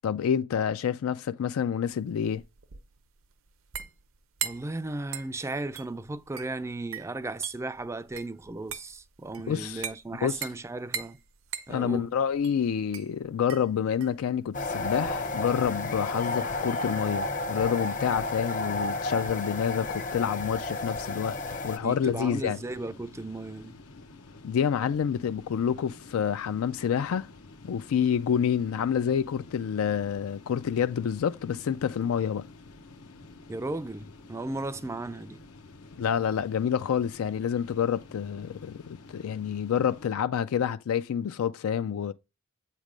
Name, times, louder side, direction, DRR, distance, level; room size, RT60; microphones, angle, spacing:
voice 1, 0.0-2.4 9.5-9.9 10.2-10.4 11.7-21.4 21.6-22.6 24.4-27.3 27.6-32.5 36.0-42.1, left 8 dB, 70° left, 0.3 m, -28 dB
sound 1, 1.9-15.9, right 8 dB, 65° right, 0.7 m, -41 dB
voice 2, 4.4-11.2 11.7-12.1 21.8-23.8 33.5-35.4, right 2 dB, 15° right, 0.3 m, -35 dB
Piezo wind on fence, 14.5-21.8, left 2 dB, 35° left, 0.6 m, -32 dB
sound 2, 21.1-40.1, left 3 dB, 90° left, 1.0 m, -50 dB
8.1 x 3.2 x 5.0 m
head